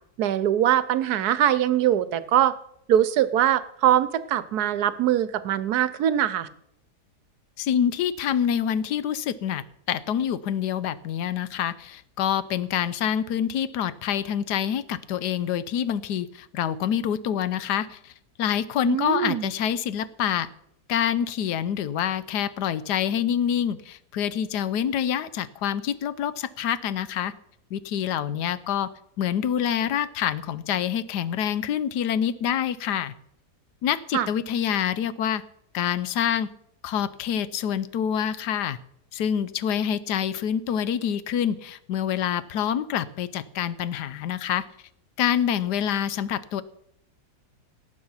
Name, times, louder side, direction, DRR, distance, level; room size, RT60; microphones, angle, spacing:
voice 1, 0.2-2.5 2.9-6.5 18.8-19.5 34.1-34.3, right 11 dB, 75° right, 16 dB, 1.2 m, -22 dB
voice 2, 7.6-18.1 18.4-20.5 20.9-27.3 27.7-28.9 29.2-33.1 33.8-35.4 35.7-36.5 36.8-38.8 39.1-44.6 45.2-46.6, left 9 dB, 85° left, 16 dB, 1.3 m, -26 dB
18.0 x 7.7 x 5.6 m, 0.73 s
omnidirectional pair, 1.7 m